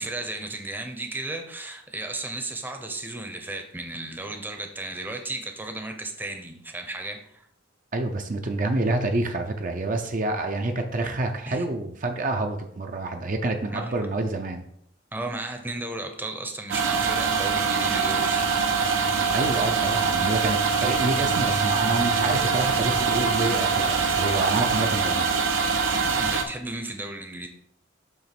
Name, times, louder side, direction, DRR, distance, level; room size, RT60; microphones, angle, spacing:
voice 1, 0.0-7.4 11.5-11.6 13.7-13.9 15.1-18.5 26.2-27.5, right 2 dB, 10° right, 4 dB, 0.7 m, -34 dB
voice 2, 7.9-14.6 19.3-25.3, right 2 dB, 45° right, 4 dB, 0.6 m, -28 dB
sound 1, 16.7-26.4, right 5 dB, 85° right, 0.9 m, -23 dB
7.3 x 3.1 x 5.9 m, 0.73 s
head